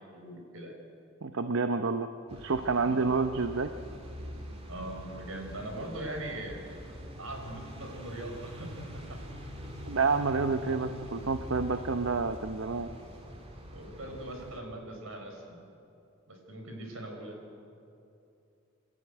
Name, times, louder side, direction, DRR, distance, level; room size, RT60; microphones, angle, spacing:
voice 1, 0.1-0.7 2.8-3.0 4.7-6.6 7.2-9.2 13.7-15.6 16.3-17.4, right 1 dB, 80° right, 3 dB, 4.5 m, -41 dB
voice 2, 1.2-2.1 2.4-3.7 9.9-12.9, right 4 dB, 65° right, 8 dB, 0.8 m, -29 dB
sound 1, 2.3-14.6, equal, 30° right, 2.4 m, -44 dB
28.5 x 12.5 x 9.1 m, 2.7 s
head